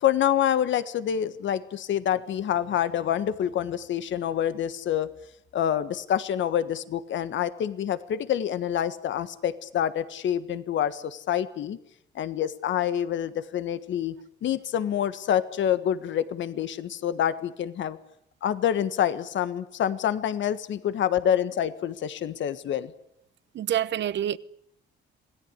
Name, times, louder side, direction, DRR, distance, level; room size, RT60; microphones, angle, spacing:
voice 1, 0.0-5.1 5.5-11.8 12.1-14.1 14.4-18.0 18.4-22.9, left 10 dB, 70° left, 1.5 m, -27 dB
voice 2, 23.5-24.4, right 11 dB, 65° right, 1.1 m, -27 dB
27.0 x 18.0 x 9.7 m
cardioid pair, 90°, 20 cm